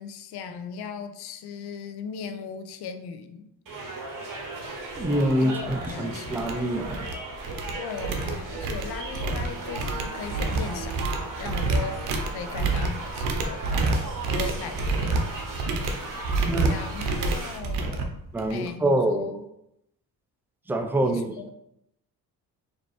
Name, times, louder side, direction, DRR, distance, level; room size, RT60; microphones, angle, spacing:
voice 1, 0.0-3.5 5.4-6.7 7.8-14.0 14.2-15.2 16.7-18.1 18.5-19.4 21.0-21.5, left 6 dB, 65° left, 8 dB, 0.6 m, -38 dB
sound 1, 3.7-17.6, right 3 dB, 50° right, 1.2 m, -37 dB
sound 2, 4.6-4.7 5.1-5.3 5.6-5.9 6.2-7.2 7.4-18.7, right 3 dB, 85° right, 0.7 m, -28 dB
voice 2, 5.0-7.0 16.5-16.8 18.3-19.3 20.7-21.4, right 1 dB, 5° right, 5 dB, 0.5 m, -25 dB
4.2 x 2.8 x 3.1 m, 0.79 s
supercardioid pair, 60°, 42 cm